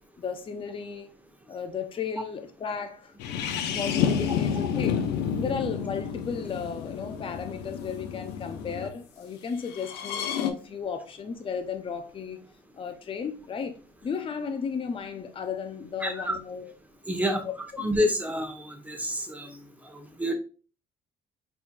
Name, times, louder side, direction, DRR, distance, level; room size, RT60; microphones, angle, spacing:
voice 1, 0.2-1.1 1.5-3.2 3.7-5.0 5.3-12.4 12.8-16.7 17.3-17.8, left 6 dB, 30° left, 0.7 m, -34 dB
sound 1, 3.2-8.9 9.7-10.5, left 8 dB, 80° left, 0.8 m, -30 dB
voice 2, 16.0-16.3 17.1-17.4 17.8-19.6 19.9-20.3, equal, 10° right, 1.1 m, -28 dB
4.4 x 4.3 x 2.5 m
cardioid pair, 110°, 17 cm